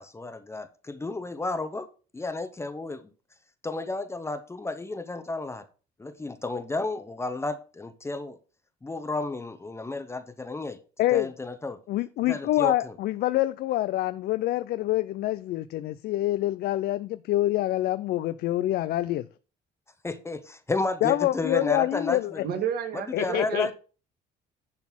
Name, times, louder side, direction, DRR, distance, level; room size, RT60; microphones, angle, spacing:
voice 1, 0.0-1.9 2.1-3.1 3.6-5.6 6.0-8.4 8.8-10.8 11.1-11.8 12.3-12.9 20.0-22.4 22.9-23.7, left 3 dB, 15° left, 10 dB, 0.9 m, -32 dB
voice 2, 11.9-19.3 21.0-22.5 23.1-23.7, left 15 dB, 70° left, 13 dB, 0.5 m, -26 dB
voice 3, 22.4-23.7, right 8 dB, 65° right, 6 dB, 2.0 m, -31 dB
11.0 x 4.1 x 6.1 m, 0.35 s
cardioid pair, 110°, 17 cm